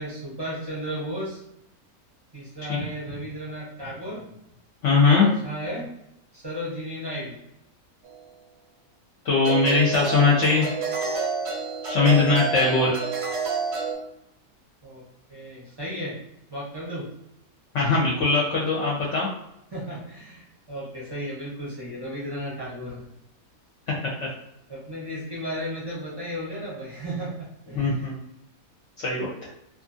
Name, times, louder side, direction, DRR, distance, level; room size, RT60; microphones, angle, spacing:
voice 1, 0.0-1.4 2.3-4.3 4.9-5.9 6.3-7.4 14.8-15.0 15.3-16.2 16.5-17.1 19.7-23.0 24.7-28.1, equal, 30° right, -7 dB, 0.5 m, -34 dB
voice 2, 4.8-5.3 9.2-10.7 11.8-12.9 17.7-19.3 24.0-24.1 27.8-28.1 29.0-29.3, left 4 dB, 65° left, -5 dB, 0.8 m, -20 dB
sound 1, 8.0-8.2 9.4-13.9, right 5 dB, 65° right, 0.7 m, -29 dB
2.5 x 2.5 x 2.5 m, 0.82 s
omnidirectional pair, 1.6 m